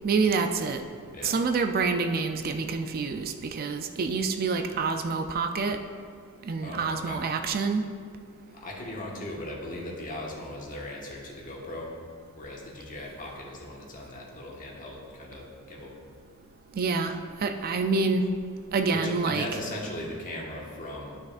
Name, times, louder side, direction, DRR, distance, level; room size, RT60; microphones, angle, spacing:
voice 1, 0.0-0.8 1.2-5.8 6.5-7.8 16.8-18.2 18.7-19.5, right 4 dB, 40° right, 6 dB, 0.4 m, -27 dB
voice 2, 6.6-7.2 8.5-11.9 12.3-15.9 18.9-21.2, left 1 dB, 40° left, -3 dB, 1.4 m, -38 dB
12.5 x 6.0 x 2.5 m, 2.1 s
head